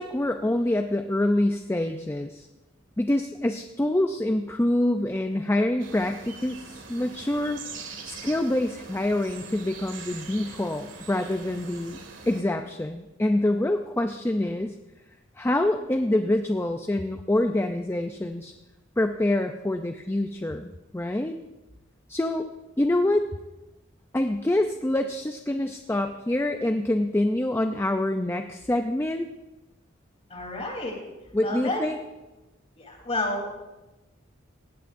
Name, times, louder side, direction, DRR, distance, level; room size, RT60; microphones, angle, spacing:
voice 1, 0.0-2.5 3.0-7.6 8.1-12.0 12.3-14.7 15.4-18.5 19.0-21.4 22.1-22.5 22.8-23.3 24.1-29.3 31.3-32.0, left 1 dB, 10° left, 6 dB, 0.5 m, -26 dB
sound 1, 5.8-12.4, right 4 dB, 70° right, 2.0 m, -43 dB
voice 2, 30.3-31.0 31.4-31.9 32.8-33.5, left 2 dB, 30° left, 0 dB, 3.6 m, -30 dB
18.5 x 16.5 x 2.6 m, 1.1 s
head